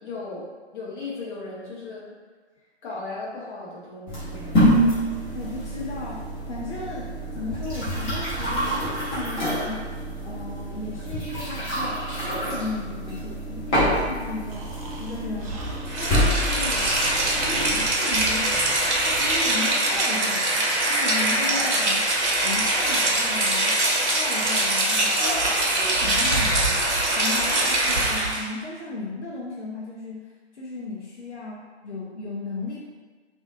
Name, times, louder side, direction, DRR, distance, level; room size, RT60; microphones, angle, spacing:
voice 1, 0.0-2.1 2.8-4.6 21.5-21.7 25.2-25.9 27.3-27.4, left 2 dB, 45° left, -6 dB, 1.2 m, -36 dB
sound 1, 4.1-17.9, equal, 20° left, 1.0 m, -27 dB
voice 2, 5.3-9.9 10.2-14.7 15.0-16.9 17.2-22.0 22.4-23.8 24.0-26.8 27.1-32.8, left 3 dB, 85° left, -5 dB, 0.7 m, -35 dB
Breathing, 14.5-19.6, right 2 dB, 30° right, 0.5 m, -40 dB
Rain, 15.9-28.5, right 1 dB, 85° right, 0.8 m, -23 dB
3.4 x 2.6 x 2.6 m, 1.4 s
figure-of-eight pair, 125°, 34 cm